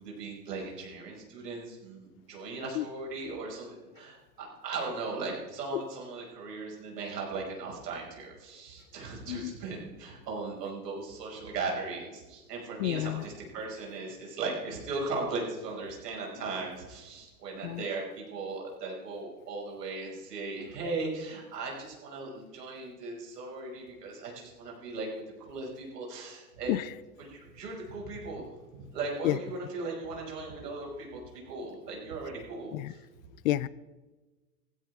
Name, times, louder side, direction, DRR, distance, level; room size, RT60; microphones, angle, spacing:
voice 1, 0.0-26.8 27.2-28.5 28.7-33.0, right 3 dB, 90° right, -1 dB, 5.8 m, -38 dB
voice 2, 12.8-13.2 17.6-17.8 26.7-26.8 29.2-29.4 32.7-32.9 33.4-33.7, left 16 dB, 60° left, 19 dB, 0.6 m, -29 dB
16.5 x 15.5 x 3.6 m, 1.2 s
supercardioid pair, 135°, 47 cm